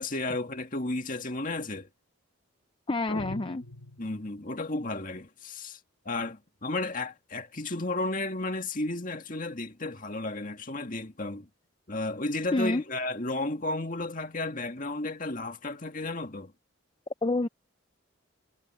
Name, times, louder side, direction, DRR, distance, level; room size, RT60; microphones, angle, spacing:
voice 1, 0.0-1.9 4.0-5.8 6.1-11.5 11.9-16.5, left 2 dB, 40° left, 2.1 m, -33 dB
voice 2, 2.9-3.6 12.5-12.8 17.2-17.5, left 2 dB, 25° left, 0.4 m, -27 dB
sound 1, 3.1-4.5, left 2 dB, 85° left, 1.5 m, -42 dB
head